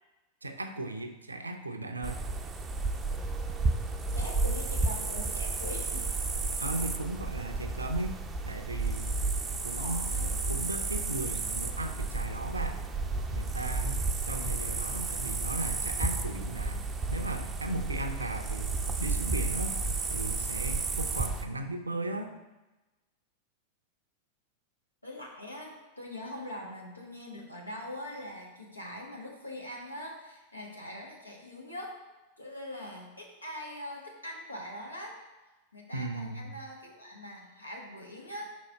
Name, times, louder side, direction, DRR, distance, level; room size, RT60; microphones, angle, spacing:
voice 1, 0.4-2.2 6.6-8.2 8.5-9.2 9.6-10.1 10.5-12.8 13.3-16.9 17.1-19.8 20.1-22.3 35.9-36.5, right 2 dB, 80° right, 6 dB, 0.5 m, -36 dB
sound 1, 2.0-21.5, right 3 dB, 20° right, 0.5 m, -32 dB
voice 2, 4.1-6.1 9.7-10.6 25.0-32.0 32.4-35.2 35.7-38.5, left 1 dB, 85° left, -1 dB, 1.2 m, -42 dB
5.3 x 4.2 x 4.7 m, 1.1 s
figure-of-eight pair, 90°, 0 cm